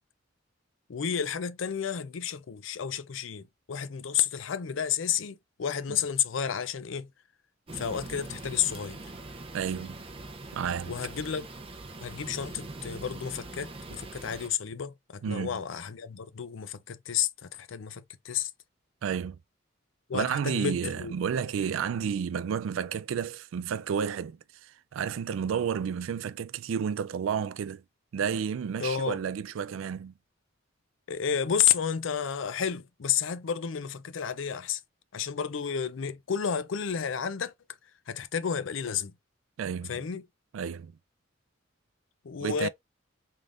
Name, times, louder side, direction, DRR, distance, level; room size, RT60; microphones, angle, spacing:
voice 1, 0.9-7.1 7.7-9.0 10.9-11.5 12.0-18.5 20.1-21.1 28.8-29.2 31.1-34.8 35.1-37.5 38.1-39.1 39.9-40.2 42.2-42.7, left 8 dB, 75° left, 0.5 m, -31 dB
sound 1, 7.7-14.5, right 2 dB, 30° right, 0.6 m, -42 dB
voice 2, 9.5-10.0 10.5-11.0 15.2-15.6 19.0-19.4 20.1-27.8 28.1-30.1 39.6-40.0 40.5-40.9 42.4-42.7, right 7 dB, 85° right, 0.3 m, -31 dB
3.7 x 3.4 x 2.5 m
head